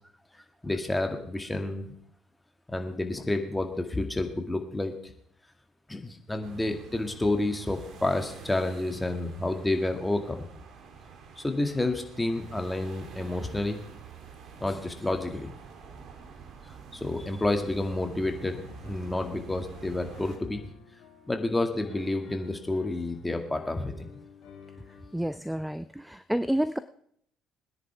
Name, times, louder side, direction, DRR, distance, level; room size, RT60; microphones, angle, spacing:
voice 1, 0.6-1.9 2.7-5.1 5.9-10.5 11.4-13.8 14.6-15.5 16.9-20.6 21.3-24.1, left 2 dB, 15° left, 4 dB, 2.1 m, -30 dB
sound 1, 6.4-20.4, right 6 dB, 55° right, 1.9 m, -48 dB
Piano, 18.4-25.3, left 6 dB, 60° left, 2.5 m, -52 dB
voice 2, 25.1-26.8, right 1 dB, 5° right, 14 dB, 0.5 m, -29 dB
21.5 x 10.0 x 3.5 m, 0.69 s
hypercardioid pair, 55°, 0 cm